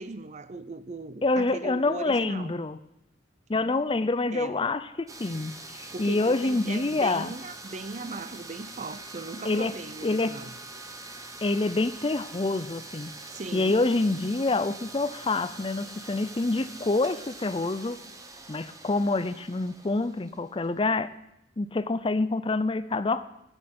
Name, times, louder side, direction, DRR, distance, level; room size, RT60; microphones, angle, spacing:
voice 1, 0.0-2.6 4.3-4.6 5.9-10.5 13.3-13.8, right 3 dB, 35° right, 0.5 m, -38 dB
voice 2, 1.2-2.8 3.5-7.3 9.4-9.7 10.0-10.4 11.4-13.1 13.5-18.0 18.5-21.1 21.6-23.3, left 3 dB, 25° left, 0.5 m, -27 dB
sound 1, 5.1-20.8, right 2 dB, 15° right, 1.1 m, -44 dB
12.0 x 6.4 x 9.4 m
head